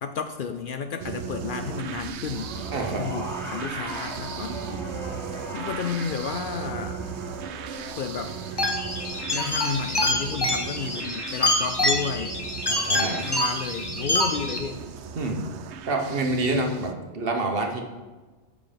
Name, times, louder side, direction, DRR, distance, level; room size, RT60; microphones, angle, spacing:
voice 1, 0.0-2.6 2.9-4.6 5.5-7.0 8.0-8.3 9.3-12.4 13.0-14.8, left 6 dB, 60° left, 8 dB, 0.6 m, -32 dB
sound 1, 1.0-16.9, right 7 dB, 80° right, 0.9 m, -37 dB
sound 2, 2.2-12.7 13.7-13.8, right 1 dB, 25° right, 2.9 m, -40 dB
voice 2, 2.7-3.1 4.7-4.8 12.7-13.2 15.2-15.4 15.9-17.8, right 2 dB, 55° right, 3 dB, 1.3 m, -27 dB
sound 3, 8.6-14.6, left 1 dB, 20° left, 1.1 m, -26 dB
7.7 x 6.3 x 5.1 m, 1.3 s
omnidirectional pair, 1.1 m